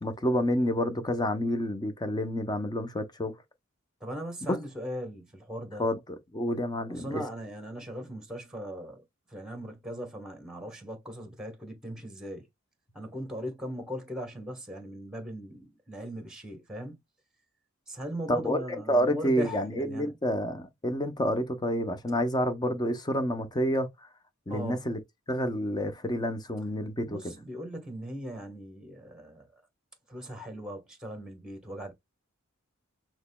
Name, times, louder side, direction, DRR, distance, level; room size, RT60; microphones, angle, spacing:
voice 1, 0.0-3.3 4.5-4.6 5.8-7.2 18.3-23.9 24.5-25.0 25.3-27.3, equal, 20° left, 0.7 m, -29 dB
voice 2, 4.0-5.8 6.9-9.0 9.3-12.5 12.9-17.0 17.9-20.1 24.5-24.8 27.1-29.6 30.1-31.9, equal, 5° right, 1.2 m, -39 dB
6.3 x 3.0 x 2.2 m
head